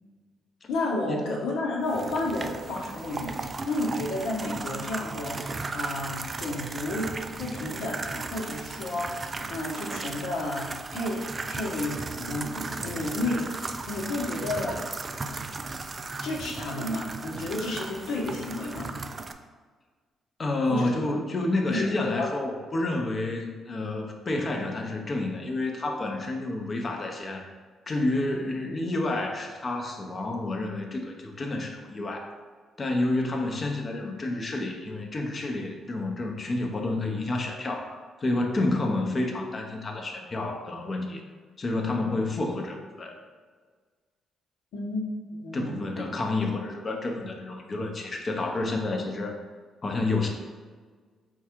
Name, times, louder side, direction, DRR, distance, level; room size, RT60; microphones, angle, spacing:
voice 1, 0.7-9.2 9.5-14.9 16.2-18.9 20.7-20.9 21.7-22.3 44.7-46.1, left 2 dB, 85° left, -2 dB, 1.0 m, -31 dB
sound 1, 1.9-19.3, right 3 dB, 35° right, 0.3 m, -36 dB
voice 2, 20.4-27.4 27.9-32.3 32.8-41.2 41.6-43.2 45.5-49.3 49.8-50.3, left 2 dB, 35° left, 2 dB, 0.7 m, -29 dB
4.7 x 2.4 x 4.4 m, 1.5 s
cardioid pair, 90°, 0 cm